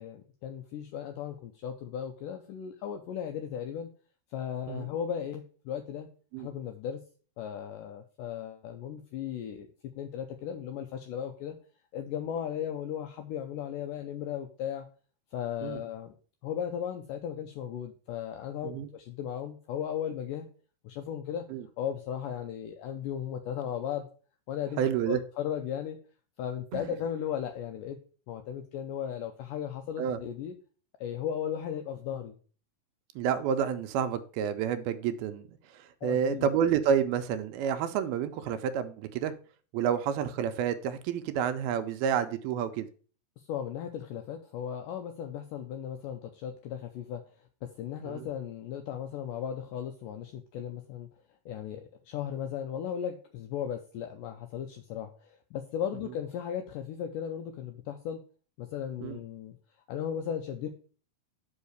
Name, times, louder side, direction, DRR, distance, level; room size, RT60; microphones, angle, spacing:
voice 1, 0.0-3.9 4.3-6.1 6.4-7.0 7.4-9.7 10.0-11.6 11.9-14.9 15.3-16.1 16.4-20.5 20.8-21.4 21.8-24.1 24.5-24.8 25.1-26.0 26.4-28.0 28.3-30.5 31.0-32.4 36.0-36.5 43.4-47.2 47.6-51.1 51.5-58.2 58.6-59.6 59.9-60.7, left 9 dB, 90° left, 5 dB, 1.9 m, -36 dB
voice 2, 24.8-25.2 26.7-26.9 30.0-30.2 33.2-35.5 35.7-39.3 39.7-42.9 48.0-48.3 59.0-59.2, right 8 dB, 80° right, 10 dB, 2.4 m, -29 dB
5.6 x 5.5 x 6.5 m, 0.40 s
omnidirectional pair, 4.6 m